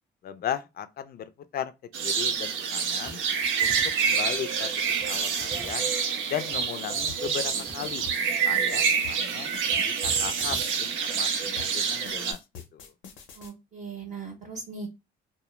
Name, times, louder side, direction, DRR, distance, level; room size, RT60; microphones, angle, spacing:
voice 1, 0.2-1.7 2.0-3.2 3.6-3.7 4.0-4.7 5.0-5.9 6.3-8.1 8.4-9.5 9.8-12.4 12.7-12.9, left 9 dB, 50° left, 0.4 m, -36 dB
sound 1, 1.9-12.3, right 6 dB, 80° right, 0.5 m, -27 dB
sound 2, 3.0-3.1 3.4-3.9 5.0-5.1 5.4-5.7 6.3-6.7 6.9-8.1 9.4-10.6 11.6-11.7, equal, 5° right, 0.7 m, -43 dB
sound 3, 7.1-10.8 11.6-13.5, left 8 dB, 90° left, 0.6 m, -44 dB
voice 2, 13.3-14.9, right 4 dB, 40° right, 0.7 m, -39 dB
2.1 x 2.0 x 3.0 m
cardioid pair, 90°, 20 cm